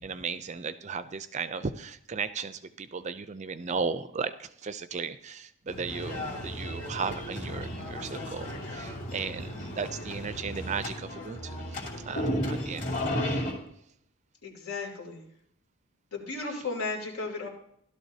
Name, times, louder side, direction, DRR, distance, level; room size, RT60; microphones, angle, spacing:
voice 1, 0.0-12.9, right 5 dB, 30° right, 12 dB, 0.4 m, -36 dB
sound 1, 5.7-10.8, equal, 60° left, 2.0 m, -43 dB
sound 2, 5.9-13.5, left 1 dB, 35° left, 2.7 m, -34 dB
voice 2, 9.2-9.7 14.4-15.2 16.1-17.5, left 3 dB, 85° left, 1 dB, 3.3 m, -35 dB
16.0 x 12.0 x 2.8 m, 0.71 s
head